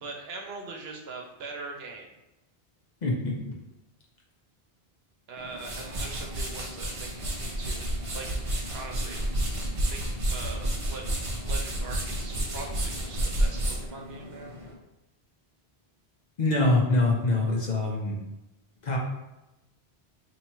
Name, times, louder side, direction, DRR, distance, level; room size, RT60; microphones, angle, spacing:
voice 1, 0.0-2.1 5.3-7.9 8.1-9.2 9.7-11.0 11.5-14.5, right 3 dB, 80° right, 1 dB, 0.9 m, -42 dB
voice 2, 3.0-3.4 16.4-18.2 18.8-19.0, left 2 dB, 50° left, -1 dB, 0.7 m, -24 dB
sound 1, 5.4-14.7, right 1 dB, 40° right, 0.6 m, -31 dB
3.0 x 2.7 x 4.3 m, 0.95 s
omnidirectional pair, 1.0 m